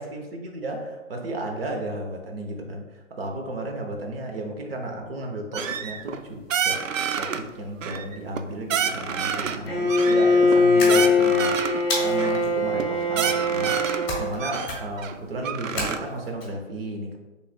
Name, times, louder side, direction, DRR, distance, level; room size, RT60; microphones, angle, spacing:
voice 1, 0.0-6.8 7.1-13.8 14.2-17.2, right 1 dB, 50° right, 2 dB, 1.0 m, -33 dB
sound 1, 5.5-6.2 6.5-7.4 7.8-8.4 8.7-9.6 9.9-11.8 12.2-12.4 12.8-12.9 13.1-14.1 14.4-16.0, right 7 dB, 80° right, 0.5 m, -28 dB
Bowed string instrument, 9.7-14.4, left 2 dB, ahead, 0.5 m, -21 dB
sound 2, 10.8-11.4 11.9-12.5 14.1-14.4 14.6-15.1 15.8-16.4, left 2 dB, 20° left, 1.0 m, -31 dB
5.6 x 3.3 x 2.3 m, 1.1 s
hypercardioid pair, 150°, 38 cm